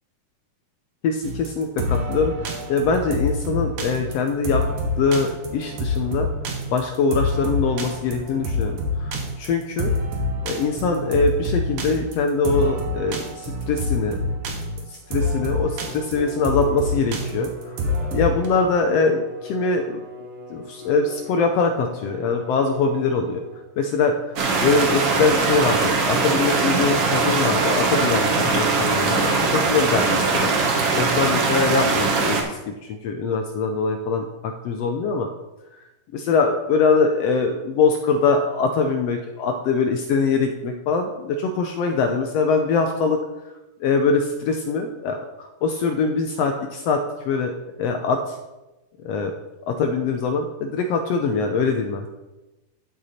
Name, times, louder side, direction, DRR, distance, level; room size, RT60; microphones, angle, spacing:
voice 1, 1.0-4.6 5.0-6.3 6.7-9.1 9.4-9.9 10.4-14.2 14.9-17.5 18.1-20.0 20.5-23.4 23.8-24.2 24.6-30.5 31.0-35.3 36.1-43.2 43.8-47.0 47.2-47.5 47.8-48.3 49.0-49.3 49.7-52.1, left 4 dB, 80° left, 5 dB, 1.4 m, -23 dB
sound 1, 1.2-18.5, left 2 dB, 75° right, 2.7 m, -26 dB
Bowed string instrument, 15.6-23.9, left 2 dB, 10° left, 3.2 m, -41 dB
sound 2, 24.4-32.4, right 4 dB, 55° right, 1.9 m, -21 dB
12.5 x 6.0 x 4.2 m, 1.0 s
omnidirectional pair, 3.6 m